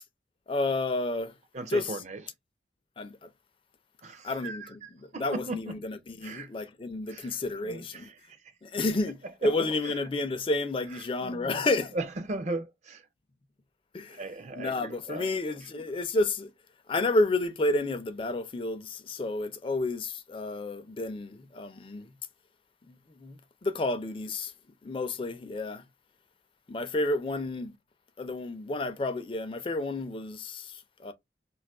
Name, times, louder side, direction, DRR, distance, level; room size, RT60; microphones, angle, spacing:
voice 1, 0.5-1.3 1.7-2.0 3.0-3.3 4.2-8.1 8.6-12.0 13.9-14.2 14.6-16.5 16.9-22.1 22.9-24.5 24.8-25.8 26.7-27.8 28.2-31.1, left 2 dB, 30° left, 0.4 m, -31 dB
voice 2, 1.5-2.2 4.0-5.8 6.2-6.5 7.1-7.3 7.6-8.4 9.4-9.5 11.2-11.5 11.9-13.1 14.1-15.3 15.7-15.8, right 2 dB, 40° right, 0.4 m, -37 dB
2.5 x 2.3 x 3.5 m
head